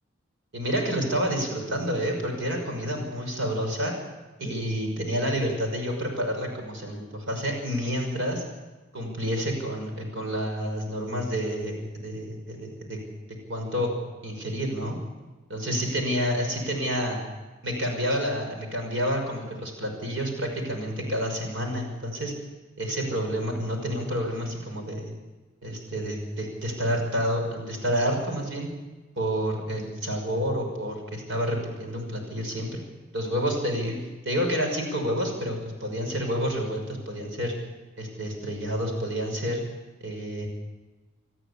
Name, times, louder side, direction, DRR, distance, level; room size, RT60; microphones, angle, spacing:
voice 1, 0.5-3.9 4.4-8.4 8.9-13.0 13.5-13.9 14.2-15.0 15.5-17.2 17.6-22.3 22.8-25.1 25.6-28.7 29.2-32.8 33.1-34.0 34.3-37.5 38.0-39.6 40.0-40.5, equal, 65° right, 2 dB, 5.9 m, -29 dB
26.5 x 15.5 x 8.5 m, 1.2 s
head